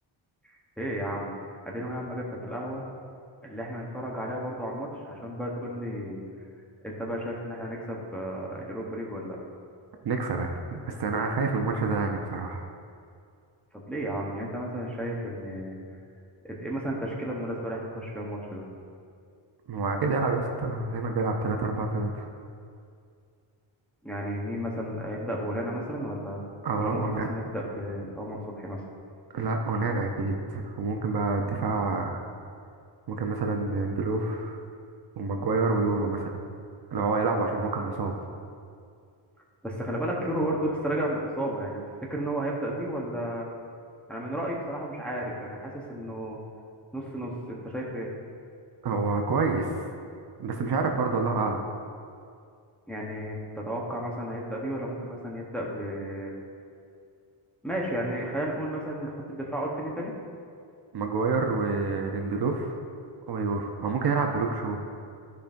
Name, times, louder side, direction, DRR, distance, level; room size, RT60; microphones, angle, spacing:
voice 1, 0.5-1.4 1.6-2.9 3.4-6.2 6.8-9.4 13.7-15.8 16.4-18.7 24.0-26.4 26.8-28.8 39.6-41.8 42.1-43.5 44.1-46.4 46.9-48.1 52.9-56.3 57.6-60.1, right 1 dB, ahead, -4 dB, 0.9 m, -33 dB
voice 2, 10.0-12.6 19.7-22.3 26.6-27.3 29.3-32.3 33.1-34.6 35.2-36.4 36.9-38.1 48.8-49.7 50.4-51.6 60.9-62.8 63.3-64.8, right 3 dB, 50° right, 2 dB, 0.6 m, -28 dB
13.0 x 5.2 x 2.5 m, 2.4 s
wide cardioid pair, 155°, 48 cm